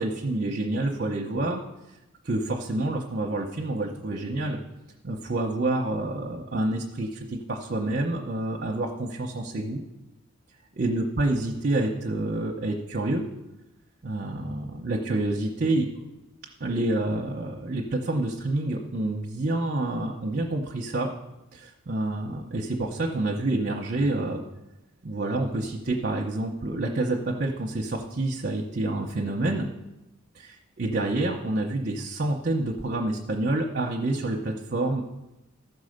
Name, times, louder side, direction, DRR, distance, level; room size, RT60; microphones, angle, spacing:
voice 1, 0.0-1.6 2.2-4.6 5.0-9.8 10.8-13.3 14.0-16.0 16.6-21.1 21.5-24.4 25.0-29.7 30.3-35.0, right 2 dB, 50° right, 0 dB, 0.9 m, -28 dB
14.0 x 4.8 x 6.6 m, 0.98 s
head